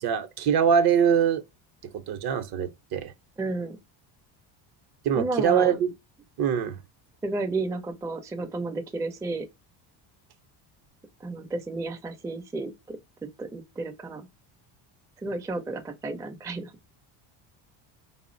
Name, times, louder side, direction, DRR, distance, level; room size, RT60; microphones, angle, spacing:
voice 1, 0.0-1.4 1.9-3.1 5.0-5.9 6.4-6.8, right 7 dB, 50° right, 0.7 m, -23 dB
voice 2, 3.4-3.8 5.1-5.8 7.2-9.5 11.2-13.0 13.4-14.3 15.2-16.7, right 3 dB, 5° right, 0.4 m, -32 dB
3.4 x 2.1 x 2.4 m
supercardioid pair, 90°, 49 cm